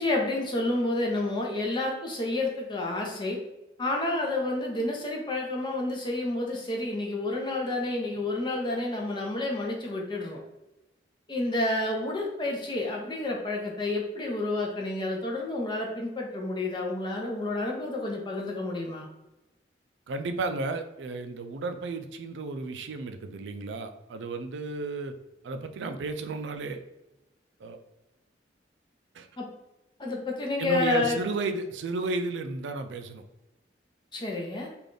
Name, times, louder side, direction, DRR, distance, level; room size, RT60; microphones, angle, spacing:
voice 1, 0.0-3.4 3.8-10.4 11.3-19.1 29.4-29.5 30.0-31.2 34.1-34.7, left 2 dB, 25° left, 0 dB, 0.7 m, -30 dB
voice 2, 20.1-25.1 25.4-26.8 27.6-27.8 29.1-29.3 30.6-33.2, right 3 dB, 80° right, 8 dB, 0.4 m, -33 dB
3.4 x 2.5 x 3.7 m, 0.96 s
head